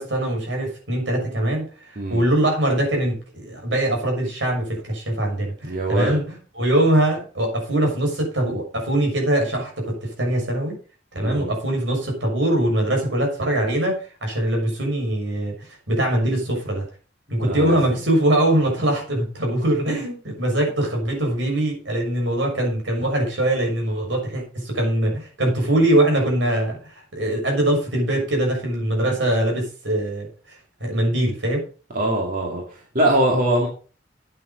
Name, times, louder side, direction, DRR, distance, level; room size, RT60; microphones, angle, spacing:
voice 1, 0.0-10.7 11.1-15.5 15.9-16.8 17.3-31.6, right 1 dB, 80° right, 1 dB, 6.2 m, -22 dB
voice 2, 5.6-6.1 11.2-11.5 17.5-17.8 31.9-32.6 32.9-33.7, right 1 dB, 50° right, -1 dB, 2.4 m, -22 dB
9.3 x 9.1 x 5.3 m, 0.37 s
head